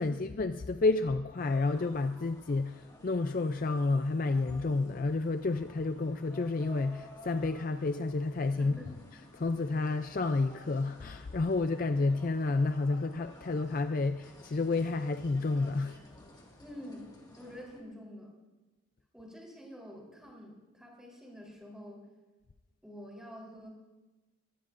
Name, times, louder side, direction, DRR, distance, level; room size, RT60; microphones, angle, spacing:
voice 1, 0.0-8.8 9.3-16.0, left 3 dB, 40° left, 0.4 m, -30 dB
sound 1, 1.4-17.8, left 1 dB, 20° left, 1.9 m, -54 dB
voice 2, 8.6-8.9 16.6-17.1 17.4-18.3 19.1-22.1 22.8-23.7, equal, 5° right, 3.7 m, -47 dB
23.5 x 19.0 x 2.6 m
head